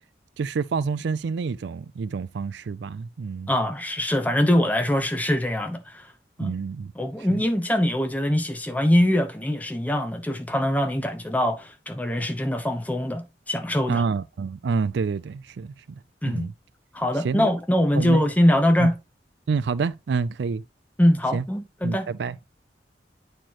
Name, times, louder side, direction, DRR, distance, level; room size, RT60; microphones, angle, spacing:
voice 1, 0.4-3.5 6.4-6.9 7.3-7.4 13.9-15.7 16.2-16.5 17.2-17.5 18.0-18.2 18.8-18.9 19.5-20.6 21.3-21.4 21.8-22.3, right 5 dB, 75° right, 0.4 m, -27 dB
voice 2, 3.5-6.1 6.4-6.5 7.0-14.0 16.2-16.5 16.9-18.9 21.0-22.1, left 1 dB, 10° left, 0.8 m, -23 dB
8.9 x 4.4 x 2.9 m
head